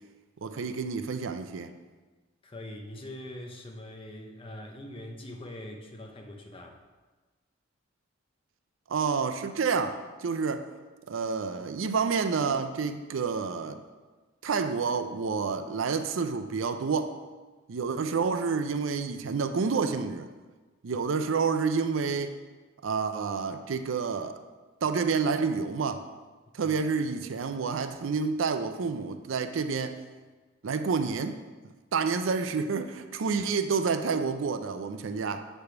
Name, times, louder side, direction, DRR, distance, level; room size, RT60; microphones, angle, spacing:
voice 1, 0.4-1.8 8.9-10.7 11.1-13.8 14.4-17.2 17.7-20.3 20.8-22.3 22.8-24.4 24.8-26.1 26.5-30.0 30.6-31.4 31.9-35.5, right 5 dB, 85° right, 8 dB, 0.5 m, -29 dB
voice 2, 2.4-6.8 26.6-26.7, left 1 dB, 30° left, 2 dB, 0.7 m, -43 dB
8.0 x 3.4 x 5.8 m, 1.3 s
head